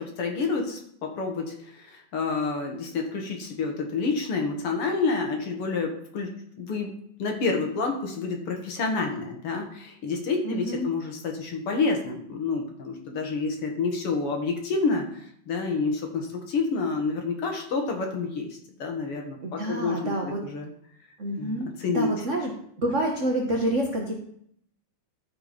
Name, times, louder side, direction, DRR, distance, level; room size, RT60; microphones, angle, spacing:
voice 1, 0.0-6.3 6.6-6.9 7.2-20.7 21.4-22.3, left 4 dB, 55° left, 2 dB, 2.1 m, -29 dB
voice 2, 10.4-10.9 19.4-20.4 21.2-22.5 22.8-24.1, right 1 dB, 60° right, 0 dB, 0.7 m, -28 dB
13.5 x 4.7 x 5.1 m, 0.68 s
omnidirectional pair, 3.4 m